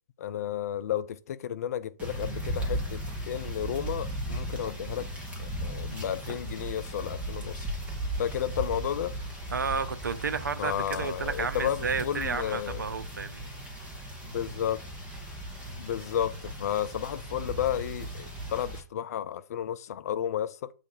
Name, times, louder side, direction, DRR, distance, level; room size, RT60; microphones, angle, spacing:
voice 1, 0.2-5.1 5.4-7.7 8.2-9.1 10.6-12.8 14.2-14.8 15.8-20.7, left 10 dB, 55° left, 0.6 m, -32 dB
sound 1, 2.0-18.8, right 1 dB, 15° right, 1.9 m, -37 dB
voice 2, 9.5-13.5, right 5 dB, 80° right, 0.7 m, -32 dB
8.3 x 3.3 x 4.1 m
hypercardioid pair, 125°, 10 cm